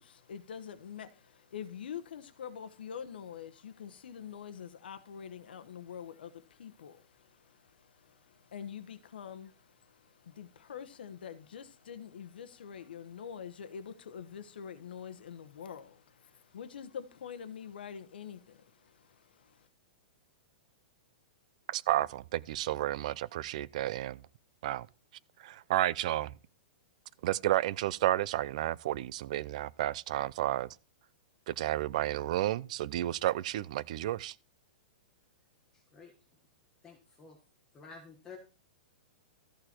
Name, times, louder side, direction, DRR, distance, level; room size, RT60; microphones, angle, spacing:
voice 1, 0.0-19.7, left 8 dB, 85° left, 1.1 m, -46 dB
voice 2, 21.7-24.2 24.6-24.9 25.4-26.4 27.2-30.7 31.5-34.4, right 14 dB, 45° right, 0.4 m, -31 dB
voice 3, 35.7-36.1 36.8-37.4 37.7-38.4, left 5 dB, 15° left, 1.3 m, -51 dB
13.5 x 6.7 x 4.4 m
hypercardioid pair, 170°, 5 cm